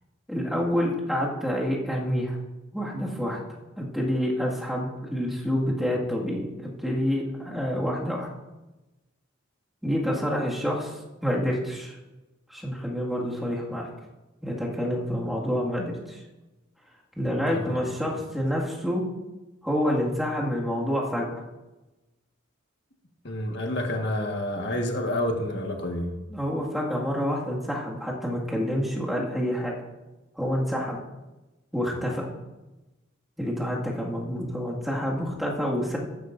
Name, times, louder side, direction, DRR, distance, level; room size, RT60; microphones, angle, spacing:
voice 1, 0.3-2.4 2.7-3.4 3.8-8.3 9.8-10.9 11.2-12.0 12.5-13.9 14.4-16.2 17.1-19.0 19.6-21.3 26.3-29.7 30.4-31.0 31.7-32.3 33.4-36.0, equal, ahead, -4 dB, 2.0 m, -28 dB
voice 2, 23.2-26.1, left 1 dB, 55° left, 2 dB, 1.6 m, -29 dB
14.0 x 10.5 x 2.6 m, 1.1 s
head